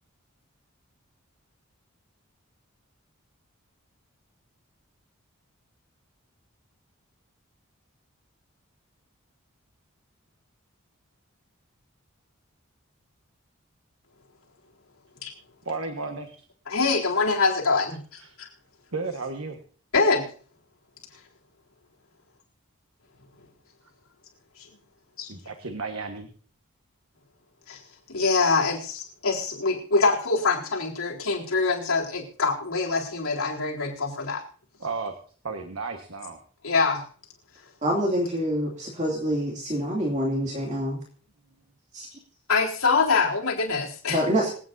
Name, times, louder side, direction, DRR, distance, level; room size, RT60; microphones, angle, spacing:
voice 1, 15.6-16.4 18.2-18.3 18.9-19.6 25.3-26.3 34.8-35.1 35.4-36.4, right 3 dB, 75° right, 5 dB, 1.4 m, -33 dB
voice 2, 16.7-18.5 19.9-20.3 24.6-24.7 25.2-25.3 27.7-27.8 28.1-34.4 36.6-37.0 42.5-44.2, left 4 dB, 75° left, -3 dB, 4.1 m, -24 dB
voice 3, 37.8-41.0 41.9-42.1 44.1-44.5, equal, 35° right, -2 dB, 2.5 m, -26 dB
26.5 x 9.0 x 2.7 m, 0.44 s
head